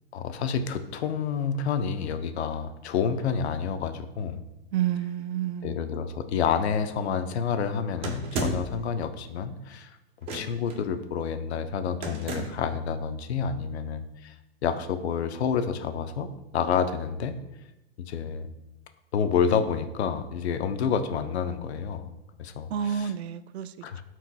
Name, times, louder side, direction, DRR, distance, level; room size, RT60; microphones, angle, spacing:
voice 1, 0.1-4.4 5.6-10.0 10.3-14.3 14.6-17.4 18.1-18.5 19.1-22.1 22.4-23.1 23.8-24.0, left 7 dB, 75° left, 8 dB, 0.9 m, -29 dB
voice 2, 4.7-5.8 22.7-23.7, right 10 dB, 75° right, 13 dB, 0.5 m, -29 dB
sound 1, 8.0-8.8 10.2-10.7 12.0-12.7, right 2 dB, 20° right, 0.5 m, -32 dB
12.0 x 4.6 x 2.3 m, 0.94 s
hypercardioid pair, 155°, 33 cm